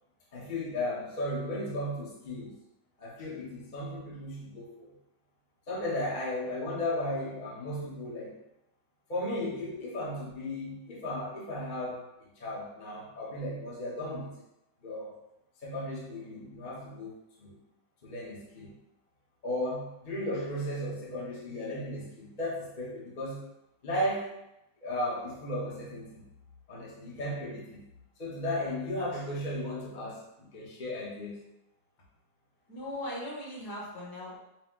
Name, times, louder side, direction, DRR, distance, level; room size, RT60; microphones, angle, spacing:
voice 1, 0.3-2.5 3.0-4.9 5.7-8.4 9.1-12.1 12.4-14.3 14.8-15.2 15.6-17.6 18.0-18.7 19.4-23.4 23.8-24.3 24.8-26.2 26.7-27.9 28.2-31.4, left 1 dB, 35° left, -5 dB, 0.7 m, -35 dB
voice 2, 32.7-34.4, left 1 dB, 55° left, -4 dB, 1.6 m, -39 dB
5.1 x 2.2 x 3.7 m, 0.87 s
omnidirectional pair, 2.1 m